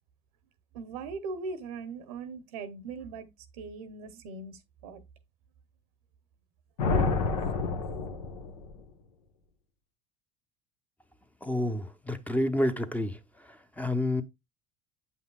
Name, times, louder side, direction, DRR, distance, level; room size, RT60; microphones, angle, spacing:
voice 1, 0.7-5.0, right 4 dB, 80° right, 0.8 m, -40 dB
sound 1, 6.8-8.8, left 3 dB, 85° left, 1.0 m, -29 dB
voice 2, 11.4-14.2, left 1 dB, 10° left, 0.7 m, -30 dB
7.7 x 5.5 x 2.3 m
hypercardioid pair, 80°, 19 cm